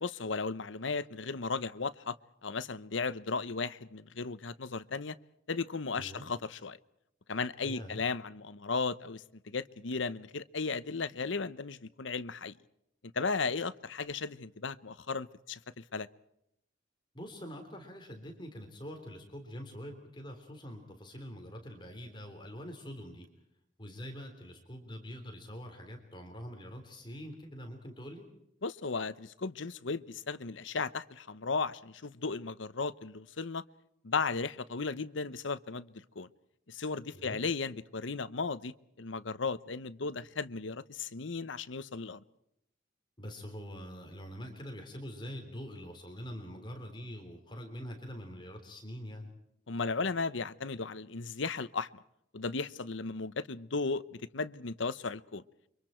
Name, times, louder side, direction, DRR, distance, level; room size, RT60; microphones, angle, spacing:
voice 1, 0.0-2.2 2.4-5.2 5.5-6.8 7.3-12.5 13.0-16.1 28.6-33.6 34.0-36.3 36.7-42.2 49.7-51.9 52.3-55.4, left 4 dB, 85° left, 0.9 m, -35 dB
voice 2, 7.6-8.0 17.1-23.3 23.8-28.2 37.1-37.4 43.2-49.3, equal, 25° left, 3.5 m, -44 dB
29.0 x 25.0 x 4.5 m
head